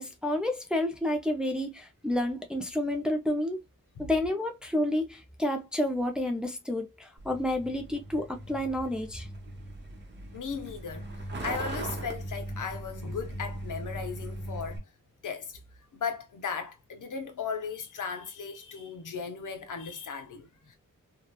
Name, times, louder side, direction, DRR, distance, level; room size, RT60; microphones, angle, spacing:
voice 1, 0.0-3.6 4.0-9.3, left 1 dB, 5° right, 0.5 m, -30 dB
Truck, 7.2-14.8, right 1 dB, 35° right, 0.8 m, -39 dB
voice 2, 10.3-14.9 15.2-15.6 15.9-20.8, left 6 dB, 65° left, 0.7 m, -37 dB
2.9 x 2.2 x 2.2 m
wide cardioid pair, 120°, 33 cm